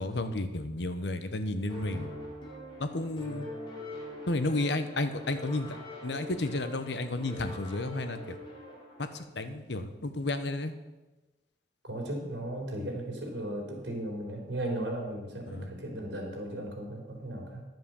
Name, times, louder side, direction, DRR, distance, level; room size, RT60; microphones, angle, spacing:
voice 1, 0.0-2.1 2.8-3.5 4.3-5.8 6.0-8.4 9.0-10.7 15.5-15.7, left 2 dB, 75° left, 9 dB, 1.0 m, -32 dB
sound 1, 1.7-9.1, left 1 dB, 25° left, 2.8 m, -43 dB
voice 2, 11.8-17.7, right 1 dB, 80° right, 0 dB, 3.6 m, -36 dB
11.0 x 7.6 x 7.1 m, 1.1 s
head